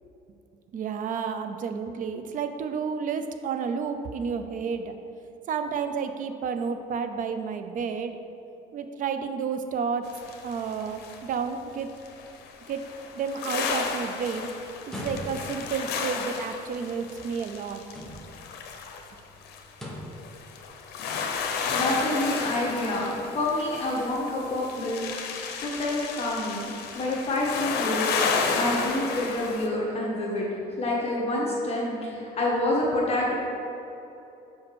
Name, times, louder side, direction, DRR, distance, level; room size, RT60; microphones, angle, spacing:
voice 1, 0.7-5.0 5.5-8.2 8.7-10.1 10.4-11.9 12.7-12.9 13.1-14.5 14.9-17.8, right 6 dB, 50° right, 8 dB, 0.6 m, -31 dB
sound 1, 10.1-11.3 12.0-29.7, left 5 dB, 75° left, 0.8 m, -32 dB
sound 2, 14.8-15.6 17.8-18.5 19.7-20.2, left 1 dB, 5° left, 1.3 m, -38 dB
voice 2, 21.7-25.0 25.2-26.7 26.9-28.1 28.5-30.5 30.8-33.3, left 1 dB, 35° left, -4 dB, 1.5 m, -28 dB
5.2 x 5.1 x 6.3 m, 2.9 s
cardioid pair, 110°, 17 cm